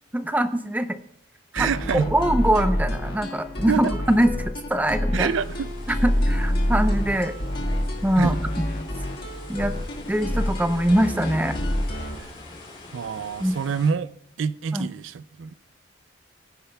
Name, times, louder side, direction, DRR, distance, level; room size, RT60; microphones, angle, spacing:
voice 1, 0.1-1.0 1.6-5.3 6.0-7.3 8.0-8.4 9.5-9.7 10.1-11.5 13.4-13.6 14.7-14.9, right 1 dB, 10° right, 0.6 m, -23 dB
voice 2, 1.5-2.1 3.7-3.9 5.1-5.7 8.2-8.4 12.2-12.3 12.9-14.1 14.4-15.5, right 6 dB, 90° right, 0.4 m, -26 dB
sound 1, 1.6-12.2, equal, 50° left, 1.7 m, -27 dB
sound 2, 5.1-13.9, left 2 dB, 30° left, 2.4 m, -44 dB
23.5 x 9.9 x 2.3 m
head